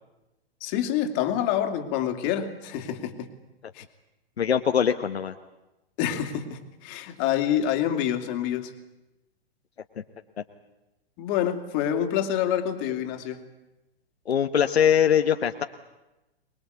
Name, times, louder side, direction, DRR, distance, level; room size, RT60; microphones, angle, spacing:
voice 1, 0.6-3.3 3.7-3.8 6.0-8.7 11.2-13.4, left 10 dB, 35° left, 6 dB, 2.7 m, -27 dB
voice 2, 4.4-5.3 14.3-15.6, left 8 dB, 80° left, 7 dB, 1.2 m, -22 dB
24.5 x 21.0 x 8.2 m, 1.0 s
hypercardioid pair, 115°, 32 cm